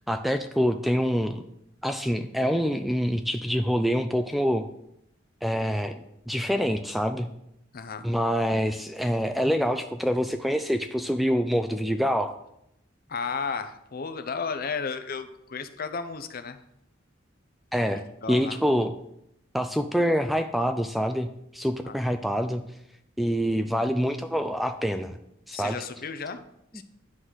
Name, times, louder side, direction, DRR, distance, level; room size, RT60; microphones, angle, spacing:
voice 1, 0.1-1.4 1.8-4.7 5.4-7.3 8.0-12.4 17.7-18.9 19.5-21.3 21.5-22.6 23.2-25.2 25.5-25.8 26.7-26.8, equal, ahead, 7 dB, 0.3 m, -26 dB
voice 2, 7.7-8.0 13.1-16.6 17.8-18.6 21.8-22.0 25.5-26.4 26.7-26.8, left 5 dB, 50° left, 10 dB, 0.7 m, -34 dB
9.9 x 3.9 x 6.2 m, 0.77 s
head